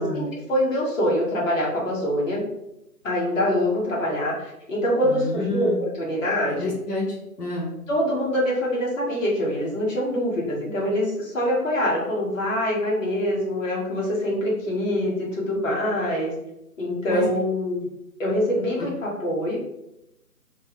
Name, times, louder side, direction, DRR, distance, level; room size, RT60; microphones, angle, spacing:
voice 1, 0.0-2.4 3.0-6.7 7.9-16.3 16.8-17.8 18.2-19.6, equal, 55° left, -4 dB, 1.2 m, -24 dB
voice 2, 5.0-5.8 6.6-7.7 17.1-17.3, left 2 dB, 80° left, -3 dB, 1.0 m, -29 dB
3.4 x 2.1 x 3.0 m, 0.88 s
figure-of-eight pair, 160°, 46 cm